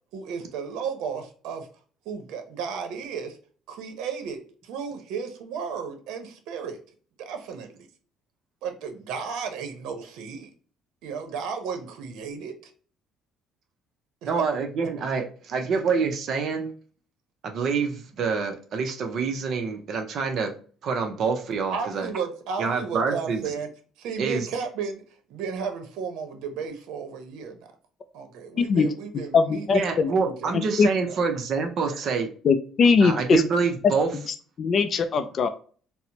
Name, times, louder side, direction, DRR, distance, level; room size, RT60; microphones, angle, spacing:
voice 1, 0.1-1.7 2.0-3.4 3.7-6.8 7.2-7.9 8.6-10.5 11.0-12.7 14.2-14.3 21.7-23.7 24.0-25.0 25.3-27.7 28.1-30.5 31.1-31.2 31.8-32.0, right 6 dB, 80° right, 6 dB, 0.7 m, -34 dB
voice 2, 14.2-16.7 17.4-20.5 20.8-22.1 22.6-23.5 24.2-24.5 29.7-32.3 33.0-34.1, right 5 dB, 45° right, 5 dB, 0.6 m, -26 dB
voice 3, 28.6-28.9 29.3-30.1 30.8-30.9 32.4-33.4 34.6-35.5, left 5 dB, 35° left, 9 dB, 0.3 m, -20 dB
4.2 x 2.0 x 2.8 m, 0.43 s
cardioid pair, 160°, 0 cm